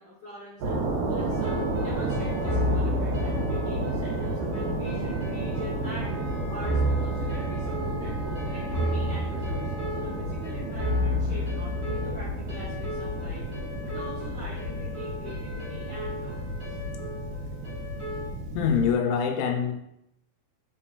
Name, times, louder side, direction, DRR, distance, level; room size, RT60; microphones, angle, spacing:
voice 1, 0.0-6.2 6.5-13.4 13.8-16.8, left 1 dB, 65° left, -10 dB, 1.0 m, -43 dB
sound 1, 0.6-18.9, right 2 dB, 90° right, 2.5 m, -32 dB
sound 2, 1.3-18.3, left 1 dB, 50° right, 1.8 m, -33 dB
sound 3, 6.0-10.7, right 3 dB, 70° right, 0.9 m, -44 dB
voice 2, 18.5-19.7, left 6 dB, 85° left, 3 dB, 2.0 m, -24 dB
4.3 x 3.6 x 2.3 m, 0.79 s
omnidirectional pair, 3.5 m